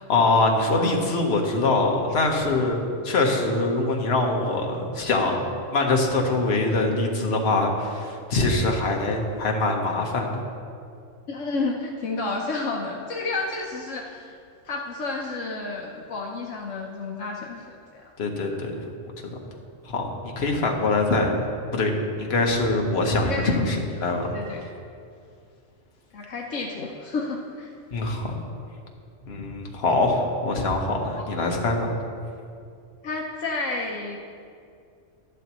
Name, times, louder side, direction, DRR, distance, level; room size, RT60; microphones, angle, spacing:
voice 1, 0.1-5.4 5.7-10.3 18.2-18.8 19.9-21.4 21.7-21.9 22.2-23.3 23.7-24.3 27.9-28.3 29.3-31.9, left 2 dB, 55° left, 1 dB, 1.3 m, -23 dB
voice 2, 11.3-14.4 14.6-18.0 18.5-18.6 23.2-23.8 24.2-24.6 26.1-27.7 31.1-31.3 33.0-34.2, left 3 dB, 70° left, -1 dB, 1.1 m, -31 dB
11.5 x 11.5 x 3.0 m, 2.4 s
omnidirectional pair, 1.4 m